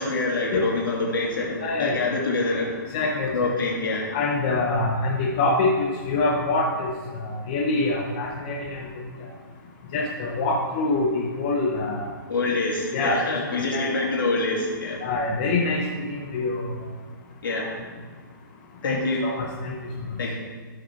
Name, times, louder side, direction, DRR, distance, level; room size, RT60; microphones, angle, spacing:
voice 1, 0.0-2.8 3.3-4.1 12.3-15.0 17.4-17.7 18.8-19.2 20.2-20.3, left 3 dB, 75° left, -3 dB, 2.4 m, -26 dB
voice 2, 1.6-2.0 2.9-3.3 4.1-6.9 7.2-8.9 9.9-12.1 12.9-13.2 13.7-14.0 15.0-15.8 16.1-16.6 18.8-19.7, left 2 dB, 25° left, -2 dB, 0.7 m, -25 dB
13.0 x 5.0 x 4.6 m, 1.5 s
hypercardioid pair, 175°, 11 cm